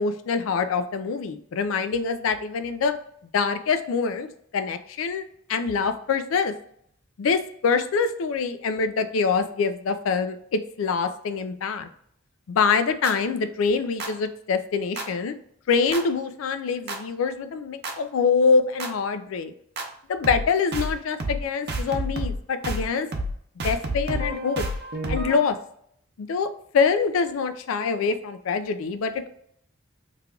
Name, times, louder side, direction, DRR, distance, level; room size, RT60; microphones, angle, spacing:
voice 1, 0.0-2.9 3.3-4.3 4.5-5.2 5.5-6.5 7.2-11.9 12.5-15.3 15.7-19.5 20.1-23.1 23.6-24.6 25.1-25.6 26.2-26.5 26.7-29.3, left 5 dB, 85° left, 9 dB, 0.4 m, -25 dB
sound 1, 13.0-13.1 14.0-14.1 15.0-15.1 15.9-16.0 16.9-17.0 17.8-17.9 18.8-18.9 19.8-19.9 20.2-20.5 20.7-20.9 21.2-21.4 21.7-22.4 22.6-22.9 23.1-23.3 23.6-25.5, right 1 dB, 55° right, 0.6 m, -29 dB
3.3 x 2.3 x 3.7 m, 0.66 s
head